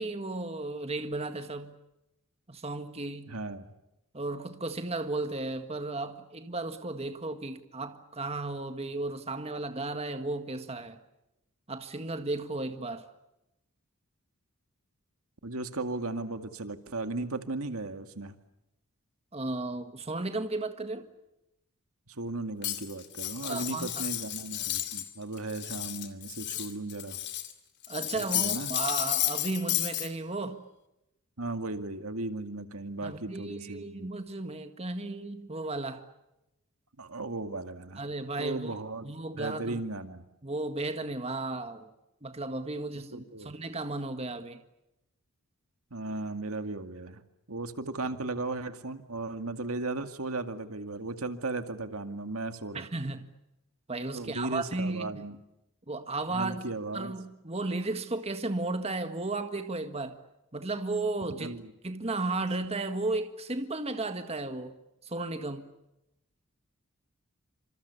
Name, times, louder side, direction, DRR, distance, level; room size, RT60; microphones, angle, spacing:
voice 1, 0.0-1.8 2.5-3.4 4.1-11.0 11.7-13.1 19.3-21.1 23.4-23.9 27.9-30.6 33.0-36.1 38.0-39.8 40.4-41.9 42.2-44.6 52.7-53.3 53.9-55.2 55.9-56.7 56.9-60.2 60.5-61.6 61.8-64.8 65.0-65.7, right 2 dB, 30° right, 1.7 m, -34 dB
voice 2, 3.3-3.6 15.4-18.3 22.1-27.2 28.2-28.7 31.4-34.1 37.0-38.0 38.4-39.1 39.4-40.2 43.1-43.5 45.9-47.2 47.5-52.9 54.1-55.4 56.3-57.1 61.4-61.7, right 2 dB, 70° right, 2.2 m, -36 dB
Cutlery silverware, 22.6-25.1 25.4-27.5 27.8-30.1, left 13 dB, 50° left, 3.1 m, -32 dB
29.0 x 27.0 x 7.0 m
head